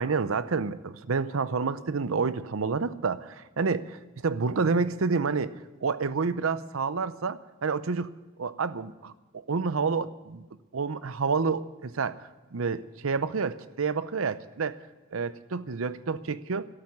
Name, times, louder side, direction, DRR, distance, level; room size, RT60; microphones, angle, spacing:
voice 1, 0.0-4.0 4.2-5.5 5.8-8.1 8.4-9.1 9.5-10.4 10.7-12.2 12.5-14.8 15.1-16.7, right 4 dB, 90° right, 15 dB, 0.7 m, -29 dB
12.5 x 8.8 x 9.6 m, 1.1 s
head